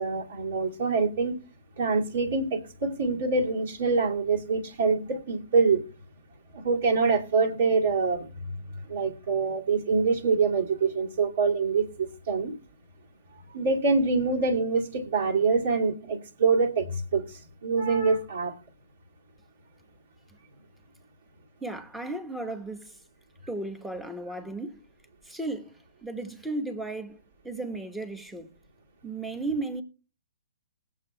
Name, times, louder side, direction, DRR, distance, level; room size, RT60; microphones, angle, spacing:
voice 1, 0.0-1.4 1.8-5.8 6.6-8.3 8.9-12.5 13.5-16.9 17.1-17.3 17.6-18.5, right 4 dB, 60° right, 2.4 m, -25 dB
voice 2, 21.6-23.0 23.5-24.8 25.2-28.5 29.0-29.8, right 2 dB, 5° right, 1.1 m, -35 dB
20.0 x 7.5 x 2.2 m
hypercardioid pair, 130°, 0 cm